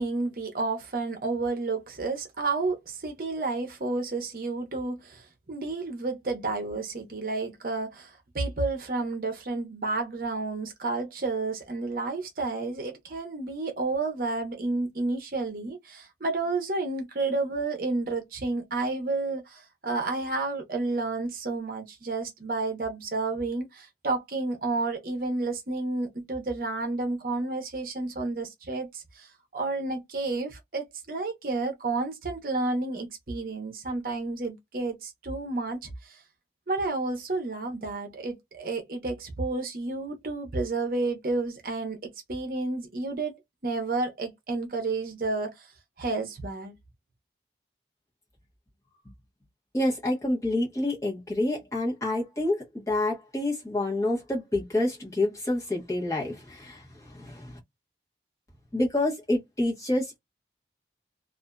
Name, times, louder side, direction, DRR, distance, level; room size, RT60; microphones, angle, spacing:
voice 1, 0.0-36.2 36.7-43.4 43.6-45.7 46.0-46.7, right 3 dB, 55° right, 0.7 m, -31 dB
voice 2, 49.7-57.6 58.7-60.2, left 1 dB, 20° left, 1.0 m, -28 dB
2.6 x 2.4 x 2.2 m
head